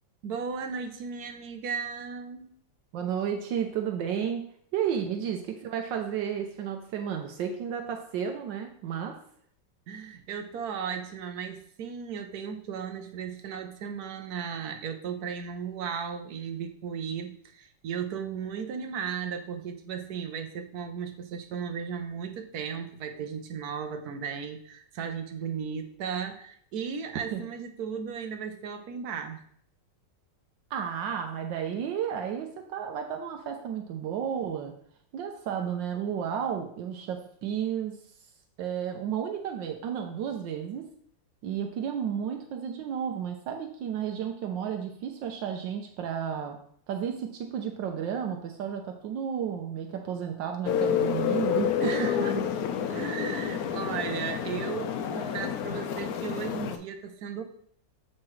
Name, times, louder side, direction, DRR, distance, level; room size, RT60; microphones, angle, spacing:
voice 1, 0.2-2.5 9.9-29.4 51.8-52.4 52.8-57.4, right 6 dB, 65° right, 6 dB, 1.1 m, -35 dB
voice 2, 2.9-4.4 4.7-9.2 27.3-27.4 30.7-34.7 35.1-38.0 38.6-40.9 41.4-46.6 46.9-52.1, right 8 dB, 80° right, 4 dB, 1.4 m, -32 dB
sound 1, 50.7-56.8, left 8 dB, 70° left, 0.9 m, -29 dB
7.5 x 5.7 x 3.2 m, 0.63 s
omnidirectional pair, 2.0 m